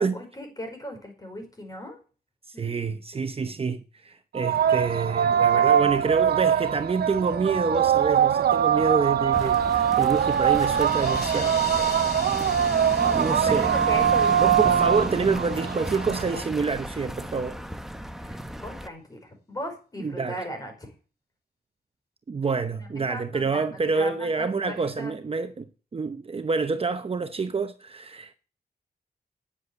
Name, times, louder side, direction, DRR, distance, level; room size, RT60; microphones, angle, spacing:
voice 1, 0.0-2.0 2.5-3.0 5.2-5.9 13.0-14.9 18.2-20.9 22.7-25.2, equal, 20° left, 5.1 m, -38 dB
voice 2, 2.5-12.1 13.1-13.7 14.4-17.6 20.0-20.4 22.3-25.6 25.9-28.3, right 4 dB, 35° right, 0.8 m, -27 dB
sound 1, 4.4-16.4, right 9 dB, 75° right, 0.6 m, -22 dB
sound 2, 9.3-18.9, equal, ahead, 0.9 m, -34 dB
sound 3, 9.8-15.9, left 5 dB, 90° left, 2.4 m, -41 dB
9.8 x 8.1 x 8.1 m
wide cardioid pair, 130°, 16 cm